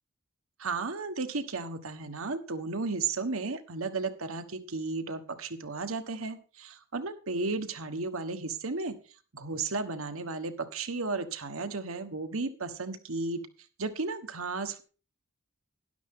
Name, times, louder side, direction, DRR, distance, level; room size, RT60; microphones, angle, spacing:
voice 1, 0.6-9.0 9.3-13.4 13.8-14.8, right 3 dB, 70° right, 8 dB, 1.4 m, -34 dB
12.5 x 11.0 x 3.7 m, 0.38 s
head